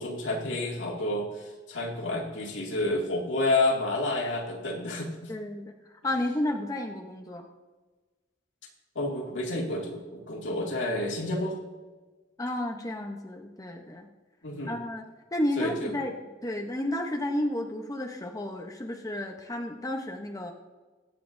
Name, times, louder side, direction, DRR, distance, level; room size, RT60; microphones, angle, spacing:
voice 1, 0.0-5.3 9.0-11.6 14.4-14.8 15.6-15.9, left 2 dB, 80° left, -1 dB, 2.3 m, -30 dB
voice 2, 5.3-5.7 6.0-7.4 12.4-14.1 14.7-15.0 15.3-16.1 16.4-20.5, left 1 dB, 20° left, 2 dB, 0.8 m, -32 dB
22.0 x 8.4 x 2.6 m, 1.3 s
head